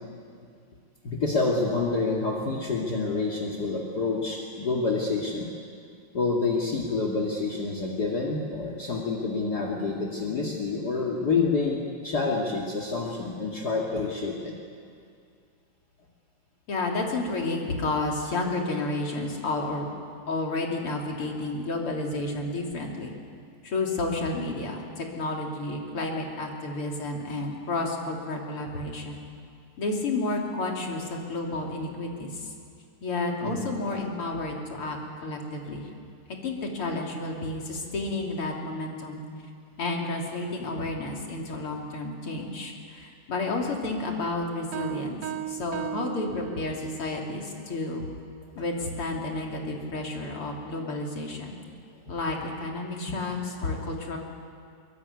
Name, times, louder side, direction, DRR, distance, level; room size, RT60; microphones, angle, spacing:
voice 1, 1.0-5.5 6.1-14.5 33.4-33.7 44.8-44.9 53.1-53.2 53.6-53.8, left 3 dB, 45° left, -2 dB, 2.6 m, -28 dB
voice 2, 16.7-19.9 20.3-23.1 23.6-29.2 29.8-32.5 33.0-35.9 36.4-39.2 39.8-45.2 45.5-48.0 48.6-51.5 52.1-54.2, left 2 dB, 80° left, 0 dB, 4.0 m, -31 dB
sound 1, 44.7-47.1, right 13 dB, 65° right, 1.4 m, -36 dB
23.5 x 22.0 x 9.6 m, 2.3 s
omnidirectional pair, 2.4 m